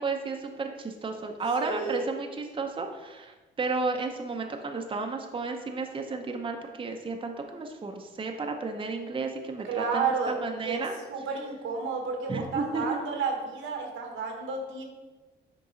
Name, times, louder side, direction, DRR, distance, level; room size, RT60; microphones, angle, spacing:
voice 1, 0.0-10.9 12.3-13.0, right 3 dB, 25° right, 4 dB, 0.7 m, -33 dB
voice 2, 1.6-2.1 9.7-10.4 10.6-10.8 11.1-14.8, right 5 dB, 85° right, 2 dB, 1.3 m, -31 dB
6.9 x 4.6 x 3.8 m, 1.2 s
cardioid pair, 90°, 20 cm